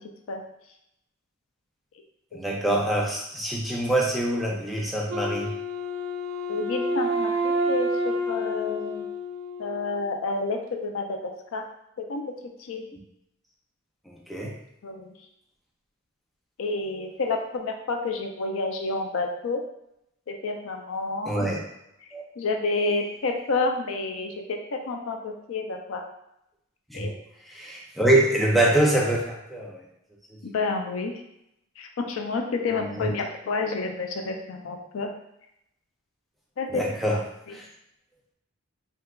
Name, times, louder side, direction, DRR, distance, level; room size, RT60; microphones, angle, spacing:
voice 1, 2.3-5.5 14.1-14.5 21.3-21.6 22.1-22.2 26.9-27.0 27.4-29.8 33.0-33.1 36.7-37.2 37.5-37.6, right 1 dB, ahead, -3 dB, 0.4 m, -24 dB
Wind instrument woodwind instrument, 5.1-10.1, equal, 65° right, 0.4 m, -29 dB
voice 2, 6.5-9.1 9.6-11.6 12.0-12.3 12.6-12.9 14.8-15.1 16.6-19.6 20.3-21.3 22.4-26.0 26.9-27.1 30.4-31.2 31.8-35.1 36.6-36.8, left 3 dB, 70° left, 3 dB, 0.4 m, -29 dB
3.6 x 2.8 x 2.2 m, 0.81 s
head